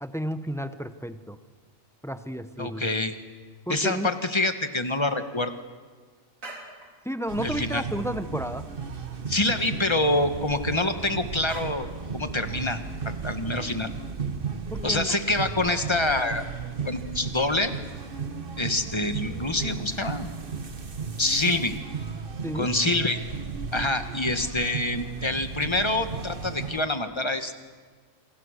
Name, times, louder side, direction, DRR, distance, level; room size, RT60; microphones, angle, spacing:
voice 1, 0.0-1.4 2.0-2.9 3.7-4.1 7.0-8.7 14.7-15.1 22.4-22.7, equal, 5° left, 11 dB, 0.7 m, -32 dB
voice 2, 2.6-3.1 3.7-5.6 7.4-7.8 9.3-12.8 13.0-13.9 14.8-16.5 16.8-17.7 18.6-20.3 21.2-21.8 22.5-23.2 23.7-27.5, left 2 dB, 20° left, 8 dB, 1.4 m, -26 dB
sound 1, 6.2-7.1 7.4-7.5 7.7-8.5 8.8-8.9 9.2-9.3 10.0-11.0 11.5-11.9, right 2 dB, 85° right, 4.2 m, -45 dB
sound 2, 7.3-26.8, right 5 dB, 45° right, 1.5 m, -35 dB
27.5 x 25.5 x 6.5 m, 1.5 s
omnidirectional pair, 1.4 m